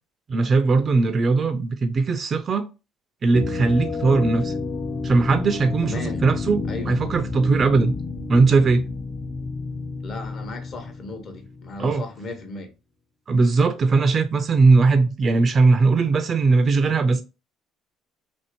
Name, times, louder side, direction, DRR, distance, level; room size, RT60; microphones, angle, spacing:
voice 1, 0.3-2.7 3.2-4.5 5.0-7.9 8.3-8.9 11.8-12.0 13.3-17.2, right 3 dB, 40° right, 0.3 m, -19 dB
sound 1, 3.3-12.0, left 3 dB, 30° left, 0.5 m, -30 dB
voice 2, 5.8-6.2 6.7-7.0 10.0-12.7, left 2 dB, 50° left, 0.9 m, -35 dB
2.9 x 2.7 x 2.8 m
supercardioid pair, 85°, 0 cm